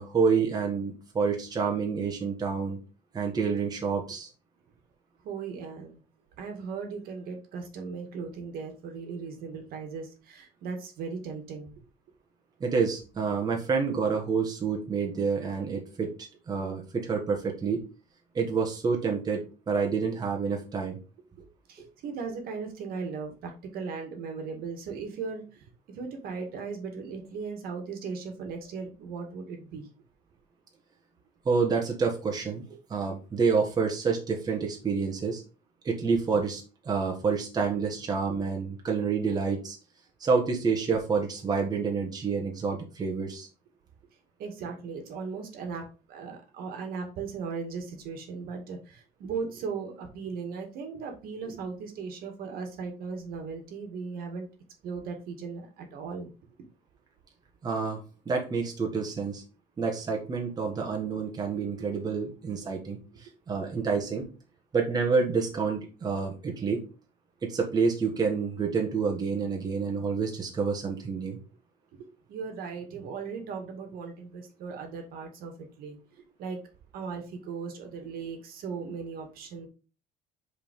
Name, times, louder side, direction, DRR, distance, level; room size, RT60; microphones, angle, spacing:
voice 1, 0.0-2.8 3.1-4.3 12.6-16.1 16.5-17.8 18.3-21.0 31.4-32.6 32.9-35.4 35.8-39.8 40.2-43.5 57.6-58.0 58.2-59.4 59.8-64.3 64.7-66.8 67.4-71.4, right 5 dB, 20° right, 0 dB, 1.5 m, -28 dB
voice 2, 5.2-6.0 6.4-11.7 21.7-29.9 36.3-36.4 44.4-54.5 54.8-56.3 63.6-63.7 71.9-76.6 76.9-79.7, right 5 dB, 60° right, 4 dB, 2.0 m, -37 dB
5.4 x 4.9 x 5.3 m, 0.33 s
cardioid pair, 150°, 17 cm